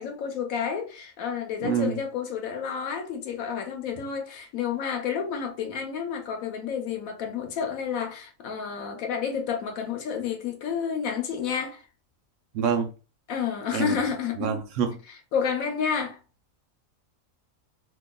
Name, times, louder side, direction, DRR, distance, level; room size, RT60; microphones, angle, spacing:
voice 1, 0.0-11.9 13.3-14.5 15.1-16.2, left 7 dB, 85° left, 1.1 m, -30 dB
voice 2, 1.6-2.0 12.5-12.9 13.7-14.0 14.4-15.0, right 7 dB, 70° right, 1.0 m, -26 dB
3.8 x 2.8 x 2.2 m
omnidirectional pair, 1.4 m